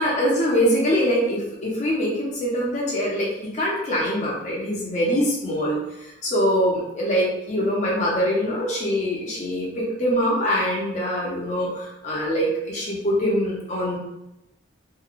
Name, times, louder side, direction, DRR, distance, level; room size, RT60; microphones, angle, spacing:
voice 1, 0.0-14.0, equal, 35° left, -5 dB, 0.6 m, -23 dB
2.8 x 2.2 x 2.4 m, 0.89 s
head